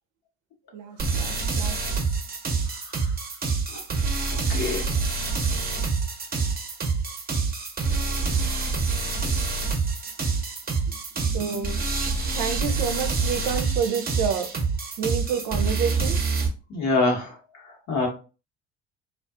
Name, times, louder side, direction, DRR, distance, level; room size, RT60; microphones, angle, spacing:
voice 1, 0.7-1.9 10.9-14.6 15.0-16.2, right 7 dB, 65° right, 0.5 m, -29 dB
sound 1, 1.0-16.5, right 4 dB, 30° right, 0.7 m, -26 dB
voice 2, 2.7-3.1 3.7-3.8 4.5-4.9 16.7-18.1, left 3 dB, 60° left, 1.2 m, -27 dB
2.4 x 2.4 x 2.3 m
hypercardioid pair, 65°, 33 cm